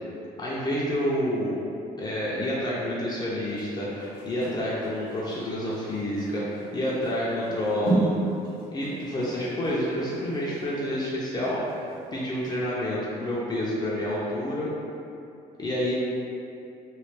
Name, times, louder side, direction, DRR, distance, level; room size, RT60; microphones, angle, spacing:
voice 1, 0.4-1.6 2.0-8.1 8.7-11.6 12.1-14.7 15.6-15.9, equal, 25° left, -7 dB, 0.5 m, -28 dB
sound 1, 3.5-12.0 12.4-12.5, right 2 dB, 55° right, 1.5 m, -33 dB
3.1 x 2.2 x 3.3 m, 2.7 s
cardioid pair, 110°, 17 cm